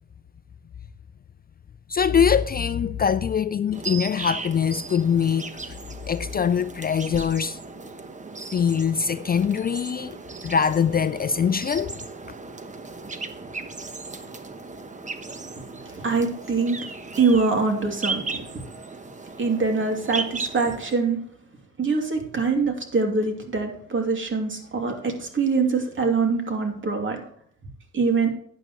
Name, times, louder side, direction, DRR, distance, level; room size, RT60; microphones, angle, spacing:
voice 1, 1.9-5.7 6.1-7.6 8.5-10.2 10.4-11.9, left 7 dB, 30° left, 0.4 m, -23 dB
sound 1, 3.7-20.9, right 3 dB, 25° right, 1.1 m, -36 dB
voice 2, 15.9-16.8 17.2-18.4 19.4-21.2 21.8-27.2 27.9-28.3, right 4 dB, 40° right, 2.7 m, -24 dB
12.0 x 9.1 x 3.1 m
cardioid pair, 90°, 30 cm